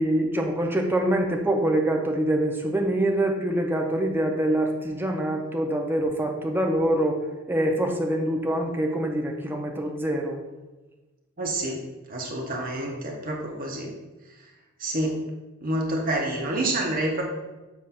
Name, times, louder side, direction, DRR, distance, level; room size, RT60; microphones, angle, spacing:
voice 1, 0.0-7.2 7.5-10.4, right 1 dB, 10° right, 2 dB, 0.7 m, -25 dB
voice 2, 11.4-11.8 12.1-13.9 14.8-15.2 15.6-17.2, right 1 dB, 40° right, 0 dB, 0.8 m, -28 dB
7.5 x 2.5 x 5.7 m, 1.1 s
head